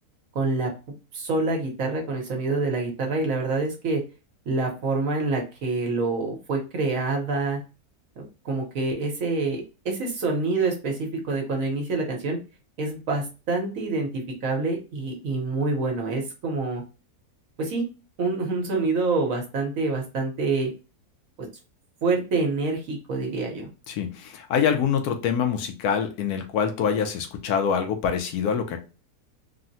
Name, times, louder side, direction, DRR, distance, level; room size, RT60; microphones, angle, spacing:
voice 1, 0.3-0.7 1.1-4.0 4.5-7.6 8.2-12.4 12.8-16.8 17.6-17.8 18.2-20.7 22.0-23.7, right 3 dB, 65° right, 1 dB, 1.2 m, -26 dB
voice 2, 23.9-28.8, left 7 dB, 75° left, 5 dB, 1.1 m, -25 dB
3.7 x 2.1 x 2.6 m, 0.31 s
omnidirectional pair, 1.6 m